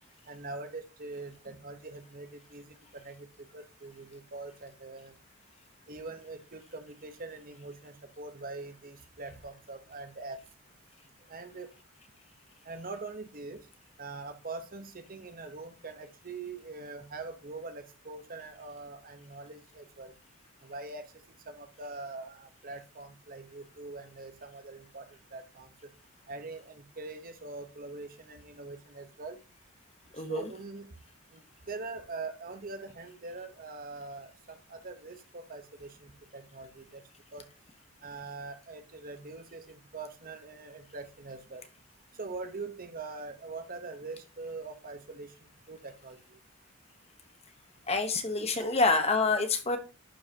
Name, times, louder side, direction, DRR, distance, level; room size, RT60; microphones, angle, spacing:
voice 1, 0.3-5.1 5.9-10.4 11.3-11.7 12.6-13.6 14.0-20.1 20.6-21.0 21.5-25.1 25.3-25.7 26.3-29.4 30.3-30.9 31.3-31.4 31.7-37.0 37.3-37.4 38.0-41.6 42.2-45.3 45.7-46.4, right 3 dB, 40° right, 1.1 m, -43 dB
voice 2, 47.9-49.8, left 3 dB, 30° left, 1.1 m, -27 dB
11.0 x 5.7 x 2.9 m
head